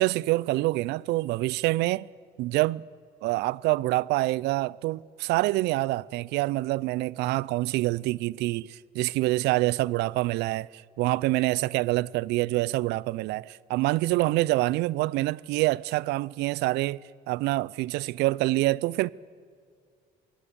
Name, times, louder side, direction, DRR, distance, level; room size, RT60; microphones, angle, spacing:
voice 1, 0.0-2.1 2.4-2.8 3.2-17.0 17.3-19.1, right 19 dB, 85° right, 0.4 m, -26 dB
23.0 x 16.5 x 6.8 m
cardioid pair, 110°, 17 cm